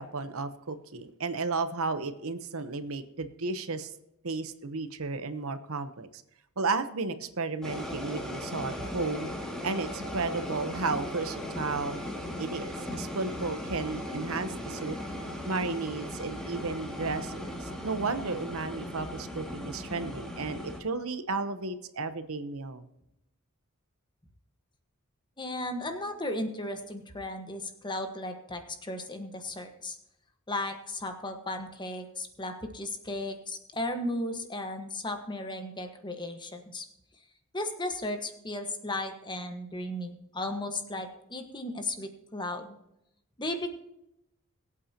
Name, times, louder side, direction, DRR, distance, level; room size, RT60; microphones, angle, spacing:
voice 1, 0.0-3.9 4.2-6.1 6.6-9.3 9.6-12.1 12.4-15.0 15.4-22.8, right 3 dB, 70° right, 10 dB, 0.9 m, -33 dB
sound 1, 7.6-20.8, left 1 dB, 5° left, 2.3 m, -37 dB
voice 2, 25.4-30.0 30.5-36.8 37.5-42.8 43.4-43.7, left 1 dB, 20° left, 6 dB, 1.3 m, -35 dB
22.0 x 8.6 x 2.9 m, 0.83 s
head